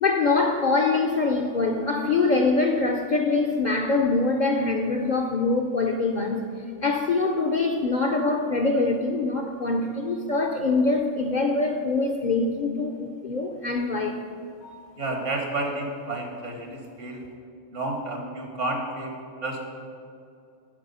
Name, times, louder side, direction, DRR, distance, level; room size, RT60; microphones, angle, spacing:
voice 1, 0.0-6.5 6.8-14.2 14.6-14.8, left 3 dB, 55° left, 3 dB, 0.5 m, -24 dB
voice 2, 15.0-17.2 17.7-19.1 19.4-19.6, right 2 dB, 75° right, 2 dB, 1.7 m, -30 dB
9.0 x 5.8 x 5.5 m, 2.4 s
omnidirectional pair, 1.3 m